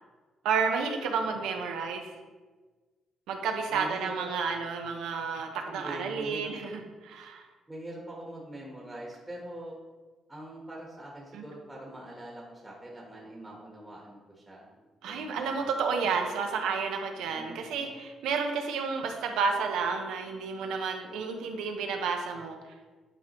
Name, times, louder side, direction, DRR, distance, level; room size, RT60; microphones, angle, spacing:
voice 1, 0.4-2.1 3.3-7.4 11.3-11.4 15.0-22.6, right 5 dB, 90° right, 4 dB, 0.7 m, -31 dB
voice 2, 3.7-4.3 5.6-6.5 7.7-9.8 10.3-15.7 17.3-17.9, right 1 dB, 15° right, -3 dB, 1.1 m, -43 dB
9.2 x 3.5 x 3.0 m, 1.3 s
cardioid pair, 90°, 0 cm